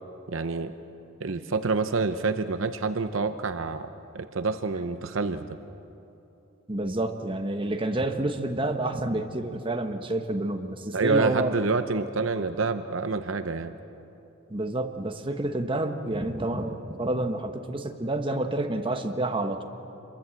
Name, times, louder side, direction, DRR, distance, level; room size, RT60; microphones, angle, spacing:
voice 1, 0.3-0.7 1.2-3.9 4.1-5.5 10.9-13.7, right 4 dB, 65° right, 10 dB, 0.7 m, -27 dB
voice 2, 6.7-11.5 14.5-19.6, right 1 dB, 25° right, 5 dB, 1.2 m, -29 dB
26.5 x 22.0 x 7.7 m, 3.0 s
head